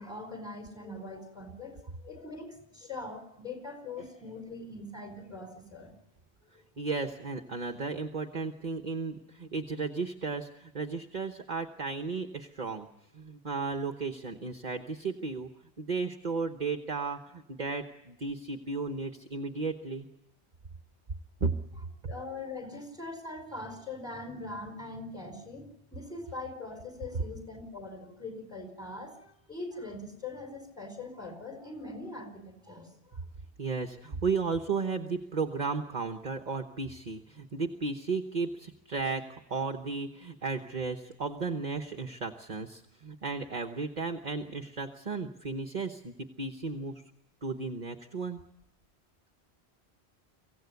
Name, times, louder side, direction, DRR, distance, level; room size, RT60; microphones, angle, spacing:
voice 1, 0.0-5.9 6.5-6.6 22.1-33.2, left 2 dB, 5° right, 5 dB, 4.8 m, -42 dB
voice 2, 6.8-12.9 13.1-15.5 15.8-20.1 21.4-21.5 22.0-22.1 33.6-39.2 39.5-47.0 47.4-48.4, right 4 dB, 45° right, 6 dB, 1.2 m, -34 dB
24.5 x 16.5 x 9.5 m, 0.87 s
omnidirectional pair, 1.1 m